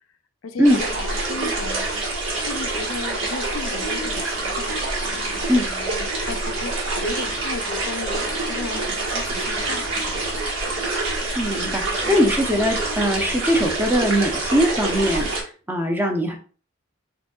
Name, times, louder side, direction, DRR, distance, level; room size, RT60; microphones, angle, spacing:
voice 1, 0.4-1.9 2.4-10.7 12.0-12.2, left 4 dB, 80° left, 7 dB, 0.5 m, -35 dB
sound 1, 0.6-15.4, right 2 dB, 75° right, 1.5 m, -26 dB
voice 2, 11.4-16.4, equal, 10° right, 2 dB, 0.6 m, -21 dB
3.9 x 3.6 x 2.3 m, 0.39 s
head